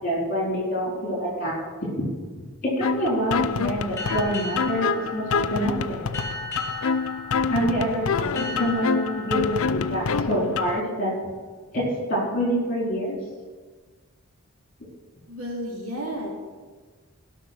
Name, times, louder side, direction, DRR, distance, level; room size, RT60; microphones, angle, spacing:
voice 1, 0.0-1.6 2.0-2.1 2.6-6.0 7.5-11.1 11.7-11.8 12.1-13.2, equal, 40° left, -3 dB, 4.2 m, -26 dB
sound 1, 2.8-10.8, left 5 dB, 70° left, 0.5 m, -27 dB
sound 2, 4.0-11.2, left 1 dB, 10° left, 2.8 m, -38 dB
voice 2, 15.3-16.3, equal, 75° right, -2 dB, 2.8 m, -32 dB
16.0 x 5.8 x 6.2 m, 1.4 s
head